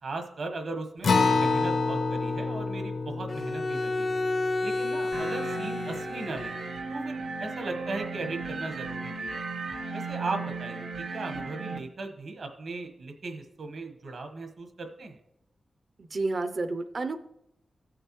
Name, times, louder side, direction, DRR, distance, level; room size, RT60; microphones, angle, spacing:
voice 1, 0.0-4.2 4.6-9.4 9.9-15.2, right 3 dB, 70° right, 5 dB, 1.2 m, -37 dB
Acoustic guitar, 1.0-5.9, left 4 dB, 75° left, 0.6 m, -28 dB
Bowed string instrument, 3.3-6.8, left 2 dB, 40° left, 0.3 m, -31 dB
sound 1, 5.1-11.8, right 3 dB, 85° right, 0.9 m, -36 dB
voice 2, 16.0-17.2, right 3 dB, 45° right, 9 dB, 0.4 m, -30 dB
16.0 x 6.6 x 3.0 m, 0.84 s
wide cardioid pair, 145°, 0 cm